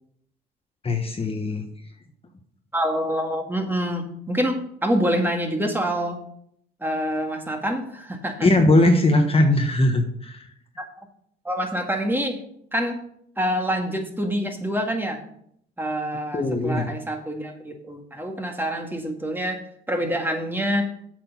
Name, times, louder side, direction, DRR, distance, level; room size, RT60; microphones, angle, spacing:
voice 1, 0.8-1.6 8.4-10.5 16.3-16.9, left 1 dB, 30° left, 4 dB, 1.2 m, -20 dB
voice 2, 2.7-6.2 6.8-8.5 10.8-10.9 11.4-12.4 12.7-13.0 13.4-15.2 15.8-19.6 19.9-20.9, equal, 10° right, 3 dB, 1.9 m, -26 dB
8.2 x 6.3 x 6.0 m, 0.69 s
cardioid pair, 90°, 20 cm